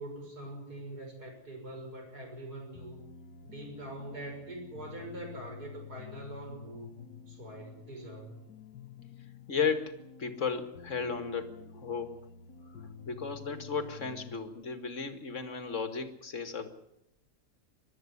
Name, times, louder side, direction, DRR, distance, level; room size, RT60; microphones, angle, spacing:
voice 1, 0.0-3.0 3.4-8.3 13.0-13.3, right 1 dB, 70° right, 2 dB, 6.9 m, -44 dB
sound 1, 2.7-14.5, left 6 dB, 85° left, 1.8 m, -50 dB
voice 2, 9.5-12.3 12.8-16.7, left 5 dB, 50° left, 8 dB, 2.3 m, -35 dB
22.0 x 12.5 x 9.8 m, 0.83 s
omnidirectional pair, 1.7 m